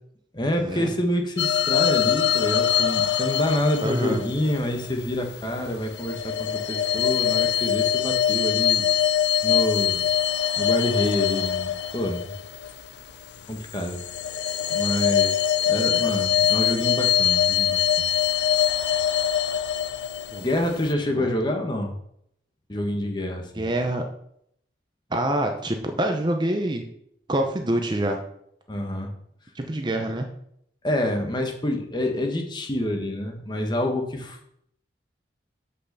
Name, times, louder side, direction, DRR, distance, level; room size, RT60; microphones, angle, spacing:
voice 1, 0.3-8.9 9.4-10.1 10.6-12.3 13.5-14.0 14.7-18.1 20.4-21.9 22.7-23.7 28.7-29.1 30.8-34.5, left 1 dB, 25° left, 3 dB, 1.1 m, -27 dB
sound 1, 1.4-5.2 5.7-13.1 13.7-20.9, left 9 dB, 75° left, 0.4 m, -23 dB
voice 2, 3.8-4.2 20.3-20.4 21.2-21.3 23.5-24.0 25.1-26.8 27.3-28.2 29.5-30.3, right 1 dB, 25° right, 4 dB, 0.6 m, -26 dB
6.3 x 5.5 x 6.6 m, 0.72 s
head